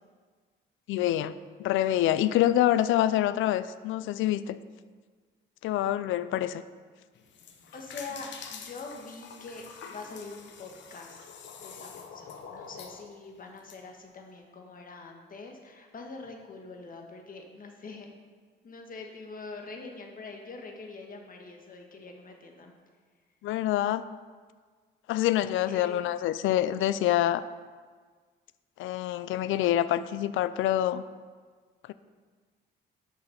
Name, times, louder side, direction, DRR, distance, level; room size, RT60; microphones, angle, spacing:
voice 1, 0.9-1.3 1.6-4.6 5.6-6.6 23.4-24.0 25.1-27.4 28.8-31.0, left 13 dB, 85° left, 15 dB, 0.4 m, -26 dB
sound 1, 7.2-13.8, left 6 dB, 65° left, 0.9 m, -46 dB
voice 2, 7.7-11.3 11.6-18.1 18.6-22.7 25.7-26.0, left 3 dB, 45° left, 3 dB, 1.4 m, -44 dB
6.8 x 5.6 x 5.7 m, 1.5 s
cardioid pair, 90°, 20 cm